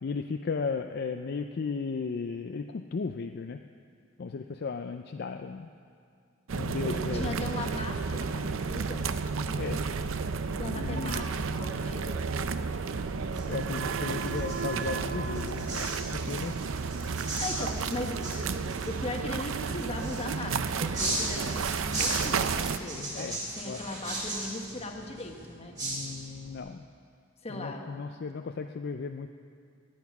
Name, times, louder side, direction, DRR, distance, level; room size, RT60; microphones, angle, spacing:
voice 1, 0.0-3.6 4.2-5.7 6.5-7.3 9.5-9.9 10.6-11.2 13.3-16.6 22.9-23.9 25.8-26.8 27.5-29.4, left 5 dB, 50° left, 6 dB, 0.4 m, -35 dB
sound 1, 6.5-22.8, right 5 dB, 75° right, 0.5 m, -32 dB
voice 2, 6.8-9.1 10.5-12.2 17.0-25.8 27.4-27.9, left 1 dB, 30° left, 2 dB, 1.3 m, -38 dB
sound 2, 13.2-26.6, right 1 dB, 20° right, 3.6 m, -38 dB
18.0 x 9.3 x 5.9 m, 2.3 s
head